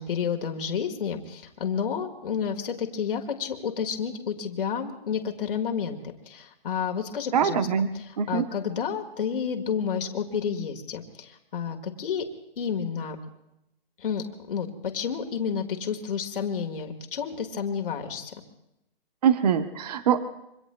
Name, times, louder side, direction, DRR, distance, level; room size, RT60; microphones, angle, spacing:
voice 1, 0.0-6.0 6.3-7.7 7.9-12.3 12.6-13.2 14.0-18.3, left 7 dB, 60° left, 4 dB, 1.7 m, -30 dB
voice 2, 7.3-7.9 8.2-8.5 19.2-20.2, right 8 dB, 40° right, 10 dB, 0.9 m, -23 dB
26.5 x 24.0 x 2.2 m, 0.84 s
hypercardioid pair, 160°, 30 cm